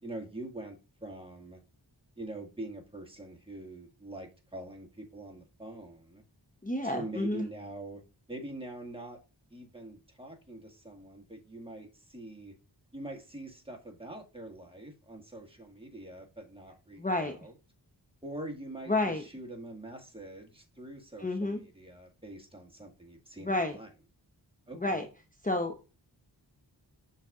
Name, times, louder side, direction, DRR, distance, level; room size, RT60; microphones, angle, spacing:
voice 1, 0.0-1.6 2.2-6.2 6.8-8.0 8.3-9.2 9.5-12.6 12.9-17.5 18.2-23.9 24.7-25.1, right 1 dB, 10° right, 1.8 m, -44 dB
voice 2, 6.6-7.5 17.0-17.3 18.9-19.2 21.2-21.6 23.4-23.8 24.8-25.1 25.4-26.0, left 2 dB, 20° left, 0.8 m, -30 dB
12.0 x 4.1 x 2.4 m
wide cardioid pair, 55°, 44 cm